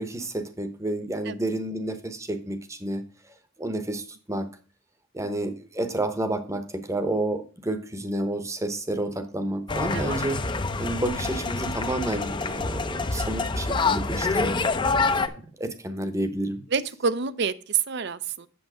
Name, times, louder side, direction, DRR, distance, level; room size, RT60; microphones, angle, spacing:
voice 1, 0.0-3.1 3.6-4.5 5.1-10.5 10.8-14.6 15.3-16.6, right 1 dB, 15° right, 10 dB, 0.9 m, -30 dB
sound 1, 9.7-15.3, left 3 dB, 25° left, 0.5 m, -26 dB
voice 2, 16.7-18.5, right 6 dB, 55° right, 15 dB, 0.6 m, -27 dB
7.9 x 7.0 x 4.9 m, 0.39 s
head